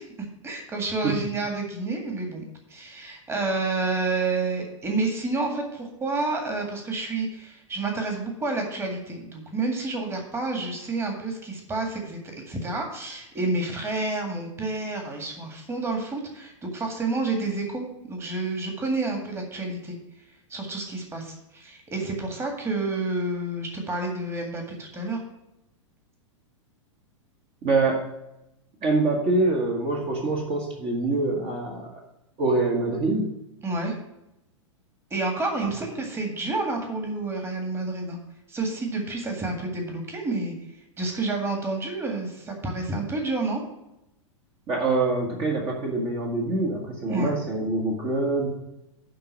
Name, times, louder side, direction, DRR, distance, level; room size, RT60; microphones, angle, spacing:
voice 1, 0.0-2.4 2.7-20.0 20.5-25.2 33.6-33.9 35.1-38.2 38.5-40.5 41.0-43.6 47.1-47.3, right 3 dB, 15° right, 2 dB, 1.9 m, -29 dB
voice 2, 27.6-28.0 28.8-31.9 32.4-33.3 44.7-48.5, right 3 dB, 30° right, -1 dB, 1.7 m, -25 dB
11.0 x 3.9 x 7.2 m, 0.87 s
figure-of-eight pair, 95°, 16 cm